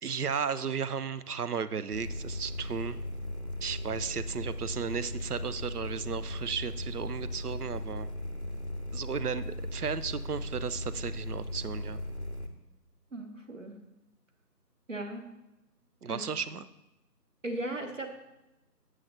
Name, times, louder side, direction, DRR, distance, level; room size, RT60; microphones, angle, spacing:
voice 1, 0.0-3.0 3.6-8.1 8.9-12.0 16.0-16.7, right 6 dB, 65° right, 15 dB, 0.5 m, -34 dB
sound 1, 1.9-12.5, left 1 dB, 45° left, 0.6 m, -37 dB
voice 2, 13.1-13.8 14.9-15.3 16.1-16.2 17.4-18.1, right 1 dB, 50° right, 5 dB, 1.1 m, -37 dB
7.7 x 7.3 x 3.1 m, 0.98 s
figure-of-eight pair, 165°, 50 cm